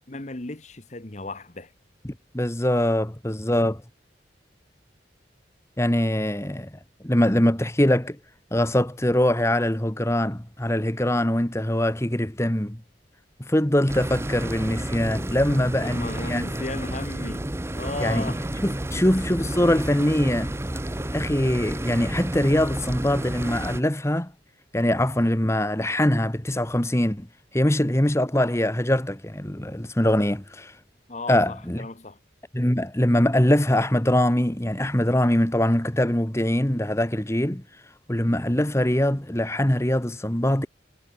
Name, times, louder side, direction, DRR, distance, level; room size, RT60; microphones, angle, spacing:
voice 1, 0.1-1.7 15.4-18.4 18.7-19.1 31.1-32.2, left 2 dB, 40° left, 1.3 m, -36 dB
voice 2, 2.3-3.8 5.8-6.7 7.0-8.2 8.5-12.8 13.4-16.4 18.0-18.3 18.6-20.5 21.1-24.3 24.7-27.3 27.5-30.7 31.3-31.9 32.5-37.6 38.1-40.7, left 1 dB, 15° left, 1.5 m, -23 dB
sound 1, 13.9-23.8, right 1 dB, 15° right, 0.8 m, -31 dB
head